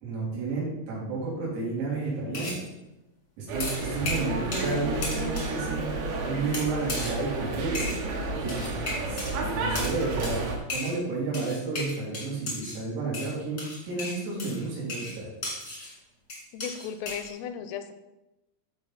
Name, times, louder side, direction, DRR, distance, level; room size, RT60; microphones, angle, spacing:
voice 1, 0.0-2.6 3.4-5.9 6.3-7.9 8.4-8.7 9.0-10.4 10.7-15.3, right 3 dB, 90° right, -7 dB, 6.0 m, -31 dB
sound 1, 2.3-2.6 3.6-4.8 5.0-5.5 6.5-7.2 7.7-8.0 8.5-9.3 9.7-10.0 10.2-10.4 10.7-11.0 11.3-12.8 13.1-15.9 16.3-17.3, left 2 dB, 60° left, 1.1 m, -35 dB
sound 2, 3.5-10.6, right 3 dB, 70° right, 2.5 m, -31 dB
voice 2, 16.5-17.9, left 8 dB, 85° left, 9 dB, 3.2 m, -36 dB
13.0 x 4.5 x 4.3 m, 0.97 s
omnidirectional pair, 5.8 m